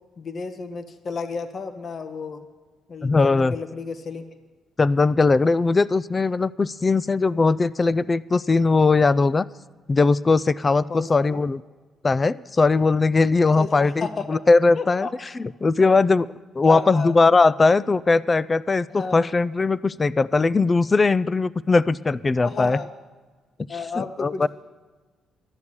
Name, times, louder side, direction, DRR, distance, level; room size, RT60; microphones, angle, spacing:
voice 1, 0.2-2.4 2.9-4.3 10.9-11.4 13.6-14.2 14.8-15.1 15.8-15.9 16.6-17.2 18.9-19.3 22.4-22.9 23.7-24.5, left 4 dB, 45° left, 9 dB, 1.0 m, -32 dB
voice 2, 3.0-3.5 4.8-9.5 9.9-11.6 12.0-15.1 15.4-16.3 16.6-22.8 24.0-24.5, left 3 dB, 30° left, 19 dB, 0.3 m, -19 dB
12.5 x 7.1 x 9.6 m, 1.4 s
cardioid pair, 90°, 0 cm